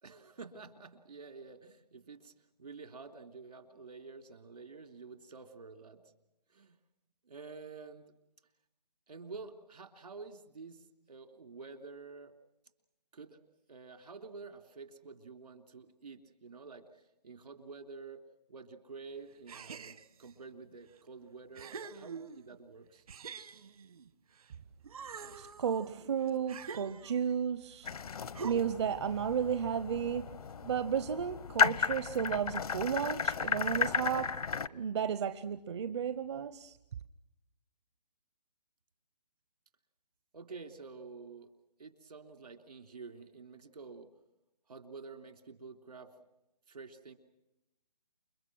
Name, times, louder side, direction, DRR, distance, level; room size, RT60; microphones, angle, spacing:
voice 1, 0.0-2.3 2.6-6.1 6.5-6.8 7.2-8.0 9.1-12.3 13.1-13.4 13.7-18.2 18.5-23.0 40.3-41.5 41.8-44.1 44.7-46.1 46.7-47.1, right 4 dB, 75° right, 3.3 m, -49 dB
sound 1, 19.5-20.3 21.0-21.1 21.5-22.6 23.1-24.5 24.8-27.4 28.3-28.9, right 5 dB, 60° right, 1.3 m, -46 dB
voice 2, 25.4-27.9 28.4-30.3 30.6-34.3 34.7-36.8, right 7 dB, 45° right, 0.8 m, -33 dB
sound 2, 27.8-34.7, left 5 dB, 65° left, 0.9 m, -34 dB
29.0 x 24.5 x 6.2 m
hypercardioid pair, 160°, 20 cm